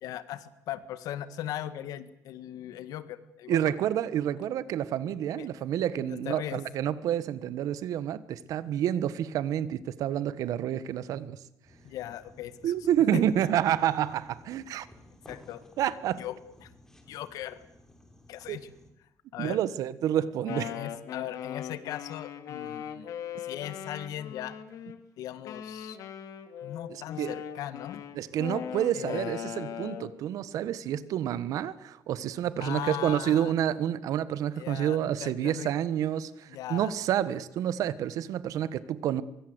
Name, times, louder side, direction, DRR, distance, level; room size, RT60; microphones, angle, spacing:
voice 1, 0.0-3.7 5.4-5.5 6.0-6.6 11.8-12.7 13.1-13.2 15.3-15.6 16.2-16.7 17.1-17.6 18.3-18.7 19.3-19.6 20.7-23.1 23.4-24.5 25.2-26.0 26.6-28.1 28.9-29.5 32.6-33.5 34.6-35.7 36.5-36.9, left 12 dB, 85° left, 13 dB, 1.9 m, -38 dB
voice 2, 3.5-11.4 12.6-14.9 15.8-16.2 18.5-18.6 19.4-20.7 26.9-27.4 28.1-39.2, right 10 dB, 70° right, 16 dB, 1.4 m, -29 dB
sound 1, 11.6-18.9, left 1 dB, 10° left, 4.0 m, -56 dB
Wind instrument woodwind instrument, 20.2-25.0 25.4-30.2, left 9 dB, 70° left, 2.8 m, -39 dB
24.5 x 23.5 x 8.1 m, 0.84 s
cardioid pair, 150°, 6 cm